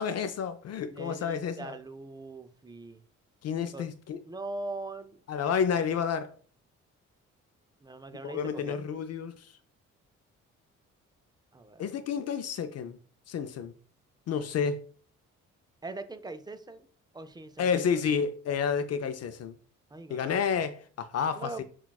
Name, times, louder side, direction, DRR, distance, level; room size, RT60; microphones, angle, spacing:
voice 1, 0.0-1.7 3.4-4.2 5.3-6.3 8.2-9.5 11.8-13.0 13.3-13.7 14.3-14.9 17.6-19.6 20.1-21.6, left 7 dB, 55° left, 0.4 m, -30 dB
voice 2, 0.8-3.0 3.7-3.9 4.2-5.2 7.8-8.8 11.5-11.8 15.8-16.9 17.1-17.8 19.9-20.6 21.3-21.6, right 2 dB, 15° right, 0.4 m, -41 dB
5.7 x 2.3 x 2.3 m
supercardioid pair, 60°, 32 cm